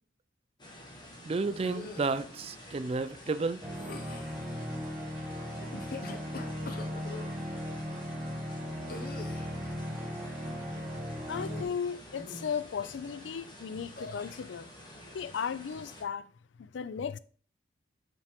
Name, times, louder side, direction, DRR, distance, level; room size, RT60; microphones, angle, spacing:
sound 1, 0.6-16.0, left 1 dB, 25° left, 1.3 m, -50 dB
voice 1, 1.2-3.6, right 4 dB, 30° right, 0.4 m, -32 dB
sound 2, 1.6-2.3 3.7-4.4 5.6-7.4 8.9-9.6 11.3-11.9 12.2-12.6 14.0-14.4, left 3 dB, 50° left, 0.8 m, -43 dB
sound 3, 3.6-11.6, equal, ahead, 1.3 m, -37 dB
voice 2, 11.3-14.7 15.1-16.3 16.6-17.2, left 7 dB, 75° left, 0.4 m, -36 dB
6.1 x 5.4 x 3.5 m
head